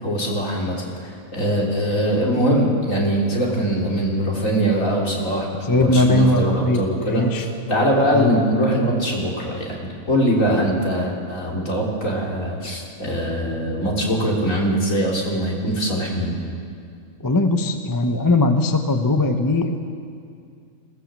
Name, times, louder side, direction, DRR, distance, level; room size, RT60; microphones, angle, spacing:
voice 1, 0.0-16.4, right 1 dB, 60° left, -2 dB, 3.7 m, -22 dB
voice 2, 5.6-7.5 8.0-8.3 17.2-19.8, left 2 dB, 15° left, 5 dB, 0.9 m, -19 dB
21.0 x 17.0 x 7.5 m, 2.3 s
omnidirectional pair, 1.6 m